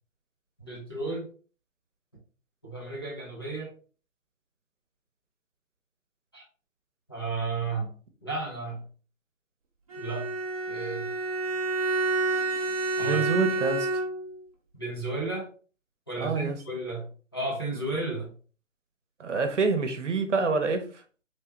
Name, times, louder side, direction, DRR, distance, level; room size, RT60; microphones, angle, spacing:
voice 1, 0.6-1.3 2.6-3.7 6.3-6.4 7.1-7.9 8.2-8.8 10.0-10.3 10.7-11.1 13.0-13.2 14.7-15.5 16.1-18.3, right 3 dB, 20° left, -5 dB, 0.5 m, -33 dB
Bowed string instrument, 9.9-14.4, right 3 dB, 30° right, 0.6 m, -29 dB
voice 2, 13.0-13.9 16.2-16.6 17.7-17.8 19.2-20.9, right 4 dB, 65° right, 7 dB, 0.9 m, -27 dB
3.3 x 3.2 x 2.9 m, 0.38 s
figure-of-eight pair, 150°, 39 cm